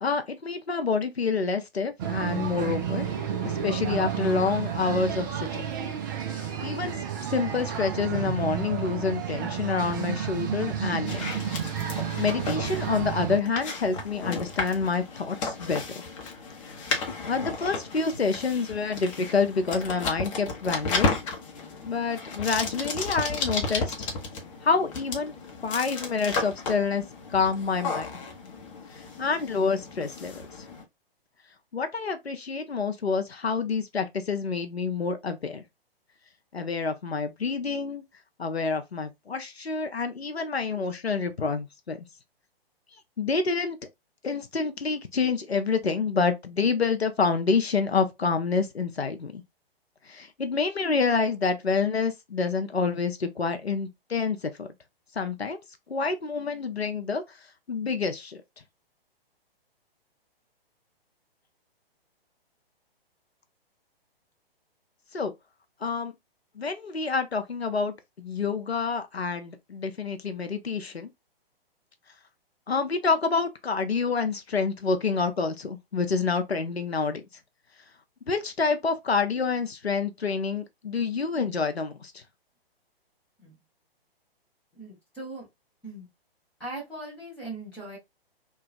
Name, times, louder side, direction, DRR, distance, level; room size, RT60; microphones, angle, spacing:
voice 1, 0.0-3.1 3.4-5.7 6.3-7.0 7.3-11.2 11.8-16.0 16.9-21.1 21.8-24.0 24.6-25.3 25.6-27.0 27.3-28.1 28.9-30.4 31.7-35.6 36.5-38.0 38.4-42.0 43.2-43.8 44.2-49.4 50.1-54.7 55.2-55.6 55.9-57.4 57.7-58.4 65.1-65.3 65.8-66.1 66.6-71.1 72.7-77.2 78.3-82.2, left 4 dB, 90° left, 0.6 m, -28 dB
sound 1, 2.0-13.4, right 9 dB, 20° right, 0.4 m, -31 dB
sound 2, 11.1-30.8, left 4 dB, 35° left, 0.8 m, -34 dB
voice 2, 84.7-85.5 85.8-86.1 86.6-88.0, right 2 dB, 5° left, 1.6 m, -39 dB
3.0 x 2.3 x 2.5 m
figure-of-eight pair, 125°, 30 cm